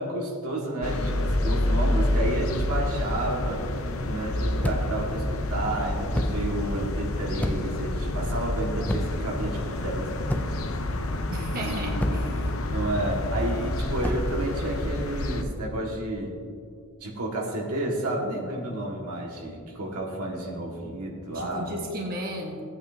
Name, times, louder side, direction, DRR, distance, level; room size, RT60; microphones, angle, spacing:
voice 1, 0.0-3.6 4.0-10.1 11.6-12.0 12.7-16.4 17.0-21.7, right 1 dB, 85° right, -2 dB, 1.8 m, -31 dB
sound 1, 0.8-15.4, left 1 dB, 70° left, 0.8 m, -28 dB
sound 2, 4.6-5.0 6.1-6.5 7.4-7.8 8.9-9.3 10.3-10.7 12.0-12.4 14.0-14.3, left 1 dB, 5° left, 0.3 m, -29 dB
voice 2, 11.3-12.5 21.3-22.6, right 1 dB, 40° right, -2 dB, 1.3 m, -35 dB
17.0 x 8.7 x 2.7 m, 2.4 s
head